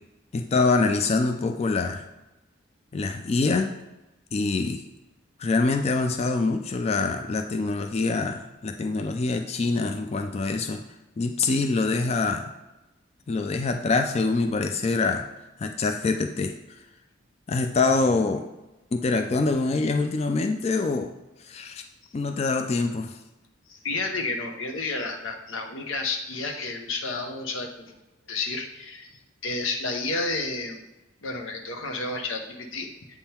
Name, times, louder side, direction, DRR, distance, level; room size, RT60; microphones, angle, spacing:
voice 1, 0.3-2.0 2.9-3.7 4.3-4.8 5.4-10.8 11.2-12.5 13.3-15.3 15.6-16.5 17.5-18.5 18.9-21.1 21.4-21.8 22.1-23.2, left 3 dB, 30° left, 6 dB, 0.3 m, -25 dB
voice 2, 23.7-28.0 28.3-30.8 31.2-33.2, left 3 dB, 90° left, 4 dB, 0.9 m, -31 dB
7.9 x 3.7 x 4.3 m, 1.0 s
head